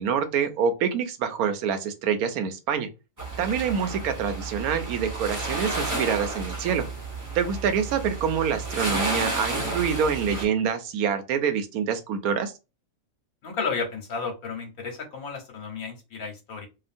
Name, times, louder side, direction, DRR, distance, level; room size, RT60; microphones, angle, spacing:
voice 1, 0.0-2.9 3.4-6.8 7.3-12.5, right 7 dB, 85° right, 1.1 m, -26 dB
sound 1, 3.2-10.4, right 2 dB, 20° right, 0.6 m, -31 dB
voice 2, 13.4-16.7, left 5 dB, 75° left, 1.4 m, -33 dB
2.9 x 2.4 x 2.5 m
omnidirectional pair, 1.5 m